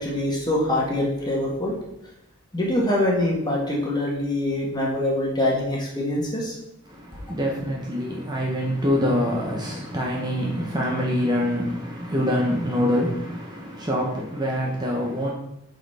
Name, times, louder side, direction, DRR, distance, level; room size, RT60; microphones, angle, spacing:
voice 1, 0.0-1.7 2.5-6.5, left 1 dB, 20° left, 1.5 m, -24 dB
voice 2, 6.9-15.3, equal, 20° right, 0.8 m, -25 dB
8.3 x 4.1 x 4.2 m
head